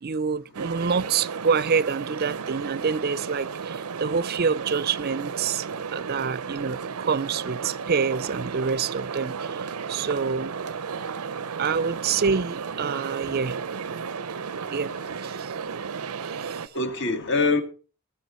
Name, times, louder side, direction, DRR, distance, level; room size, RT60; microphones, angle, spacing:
voice 1, 0.0-5.7 5.9-10.5 11.6-13.6 14.7-15.5 16.2-16.7, right 5 dB, 45° right, 0.5 m, -27 dB
sound 1, 0.5-16.7, right 6 dB, 85° right, 0.6 m, -33 dB
voice 2, 16.7-17.6, left 3 dB, 55° left, 1.8 m, -25 dB
20.0 x 7.4 x 4.3 m
head